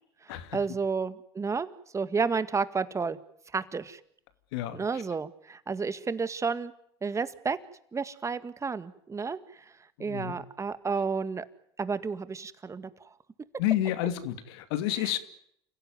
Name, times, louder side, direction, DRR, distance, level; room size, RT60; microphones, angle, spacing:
voice 1, 0.2-1.7 1.9-3.2 3.5-4.0 4.7-6.7 7.0-7.6 7.9-9.7 10.0-11.5 11.8-13.1 14.9-15.2, right 5 dB, 25° right, 13 dB, 1.9 m, -31 dB
voice 2, 4.5-4.8 10.0-10.4 13.6-15.2, left 13 dB, 75° left, 11 dB, 2.7 m, -30 dB
29.0 x 16.0 x 9.6 m, 0.71 s
hypercardioid pair, 85°, 13 cm